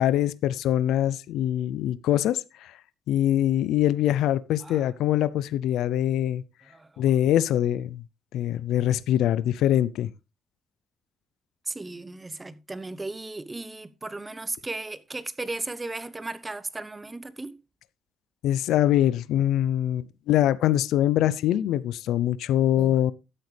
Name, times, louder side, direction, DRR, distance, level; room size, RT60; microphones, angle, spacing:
voice 1, 0.0-2.7 3.1-6.4 7.0-8.0 8.3-10.1 18.4-23.1, left 12 dB, 85° left, 0.5 m, -23 dB
voice 2, 6.7-7.0 11.7-17.6 22.8-23.0, right 2 dB, 20° right, 0.8 m, -36 dB
13.0 x 8.1 x 3.3 m
cardioid pair, 90°, 0 cm